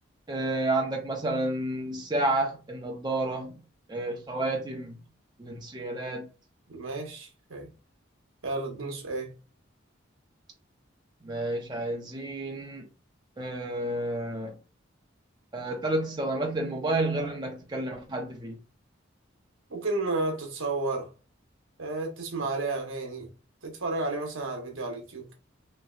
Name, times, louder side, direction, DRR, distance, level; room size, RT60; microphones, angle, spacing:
voice 1, 0.3-3.6 3.9-5.0 5.4-6.3 11.2-12.9 13.4-14.6 15.5-18.6, right 2 dB, 20° right, 0.5 m, -30 dB
voice 2, 6.7-7.7 8.4-9.3 19.7-21.1 21.8-23.3 23.6-25.3, right 2 dB, 80° right, 0.9 m, -32 dB
3.2 x 3.0 x 2.3 m
head